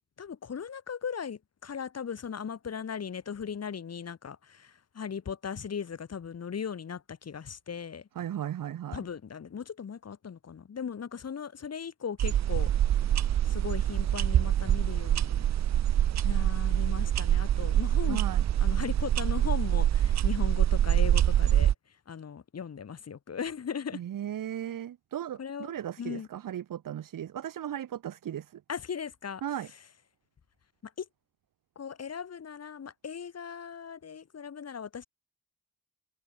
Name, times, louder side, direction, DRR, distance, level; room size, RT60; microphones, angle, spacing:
voice 1, 0.2-8.1 8.9-12.7 13.4-15.5 16.2-18.2 18.6-21.7 22.1-24.0 25.4-25.7 26.0-26.3 28.7-29.4 30.8-31.1 31.7-35.0, left 7 dB, 50° left, 3.2 m, -38 dB
voice 2, 8.2-9.0 18.1-18.5 23.9-28.6 29.4-29.7, right 10 dB, 80° right, 2.7 m, -36 dB
sound 1, 12.2-21.7, right 11 dB, 55° right, 0.6 m, -25 dB
cardioid pair, 100°, 32 cm